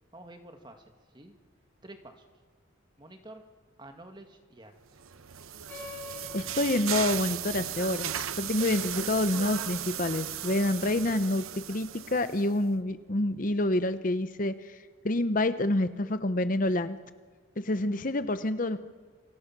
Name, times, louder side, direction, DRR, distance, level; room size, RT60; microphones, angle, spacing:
voice 1, 0.1-1.4 1.8-2.3 3.0-3.4 3.8-4.7, right 1 dB, 20° right, 5 dB, 2.0 m, -49 dB
sound 1, 5.0-12.5, right 10 dB, 90° right, 0.9 m, -36 dB
sound 2, 5.7-10.6, left 3 dB, 10° left, 4.9 m, -48 dB
voice 2, 6.3-14.8 15.0-17.0 17.6-18.9, left 1 dB, 40° left, 11 dB, 0.8 m, -28 dB
29.0 x 25.0 x 6.1 m, 1.5 s
head